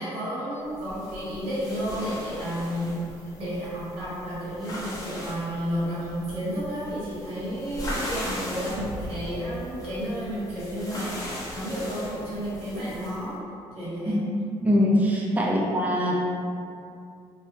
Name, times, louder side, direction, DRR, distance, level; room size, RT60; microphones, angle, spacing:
voice 1, 0.0-13.3 13.7-14.2 15.4-15.7, equal, 75° right, -10 dB, 1.4 m, -32 dB
sound 1, 0.7-13.3, left 1 dB, 35° left, 0.7 m, -38 dB
voice 2, 14.6-16.1, equal, 15° right, -4 dB, 0.5 m, -22 dB
3.1 x 2.2 x 2.7 m, 2.4 s
cardioid pair, 90°, 10 cm